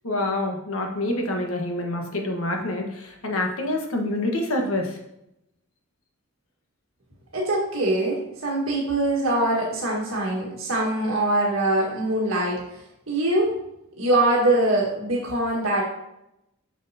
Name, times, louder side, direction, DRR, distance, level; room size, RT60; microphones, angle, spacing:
voice 1, 0.0-5.0, left 1 dB, 80° left, 2 dB, 1.4 m, -27 dB
voice 2, 7.3-12.6 13.1-13.5 14.0-15.8, right 1 dB, 70° right, -4 dB, 1.7 m, -23 dB
7.6 x 6.3 x 2.8 m, 0.83 s
head